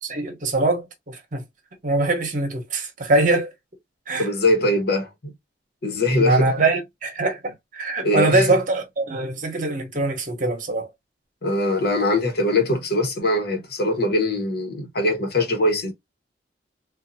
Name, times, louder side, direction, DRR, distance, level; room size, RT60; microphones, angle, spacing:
voice 1, 0.0-1.4 1.8-3.5 4.1-4.3 6.2-10.9, right 2 dB, 45° right, 1.0 m, -23 dB
voice 2, 4.2-5.3 5.8-6.5 8.0-8.5 11.4-15.9, left 1 dB, 60° left, 1.1 m, -22 dB
3.8 x 2.4 x 2.6 m
head